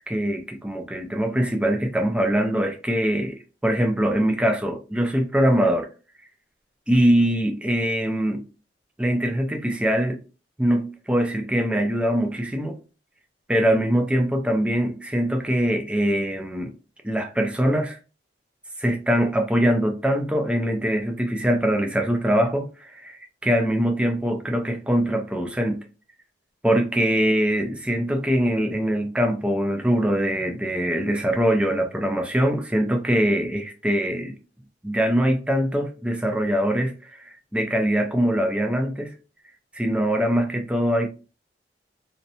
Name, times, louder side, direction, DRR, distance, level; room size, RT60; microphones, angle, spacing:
voice 1, 0.1-5.9 6.9-8.4 9.0-10.2 10.6-12.8 13.5-16.7 17.0-18.0 18.8-25.8 26.6-34.3 34.8-39.1 39.7-41.1, equal, 5° right, 0.4 m, -23 dB
2.6 x 2.1 x 2.7 m
head